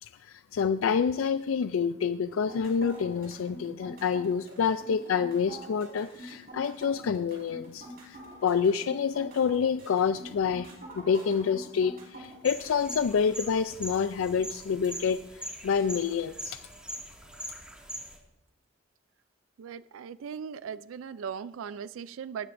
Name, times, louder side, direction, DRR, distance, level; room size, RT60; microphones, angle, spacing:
voice 1, 0.0-10.7 11.0-16.6, left 6 dB, 90° left, 12 dB, 0.4 m, -28 dB
sound 1, 2.3-12.9, right 2 dB, 50° right, 5.0 m, -46 dB
sound 2, 12.4-18.2, right 1 dB, 5° right, 1.9 m, -42 dB
voice 2, 19.6-22.5, right 7 dB, 90° right, 16 dB, 0.4 m, -38 dB
19.0 x 12.5 x 2.6 m, 0.93 s
head